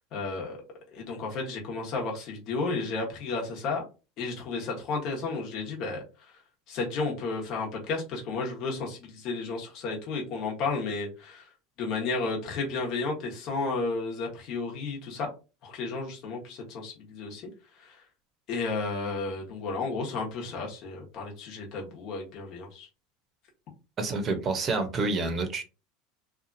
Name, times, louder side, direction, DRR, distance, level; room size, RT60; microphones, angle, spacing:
voice 1, 0.1-0.6 0.9-3.9 4.2-6.3 6.7-11.5 11.8-15.3 15.6-17.5 17.8-18.0 18.5-22.9, left 3 dB, 50° left, 1.1 m, -32 dB
voice 2, 24.0-25.6, right 3 dB, 35° right, 0.7 m, -28 dB
2.7 x 2.4 x 2.6 m
supercardioid pair, 115°, 0 cm